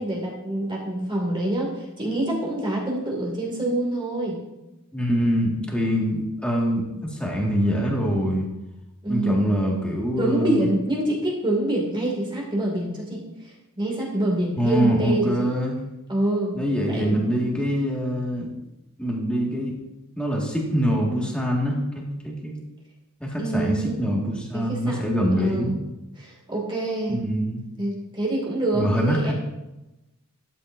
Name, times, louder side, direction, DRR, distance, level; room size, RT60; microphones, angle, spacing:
voice 1, 0.0-4.4 9.0-9.4 10.2-13.2 13.8-15.5 16.1-16.6 16.9-17.2 23.4-24.0 24.5-25.0 25.4-25.7 26.2-27.2 27.8-29.3, right 1 dB, 25° right, -2 dB, 2.4 m, -26 dB
voice 2, 4.9-8.5 9.1-10.7 14.6-15.8 16.5-18.5 19.0-19.8 20.2-22.5 23.2-25.7 27.1-27.6 28.7-29.3, equal, 5° left, -2 dB, 2.0 m, -24 dB
12.5 x 8.8 x 2.7 m, 0.97 s
head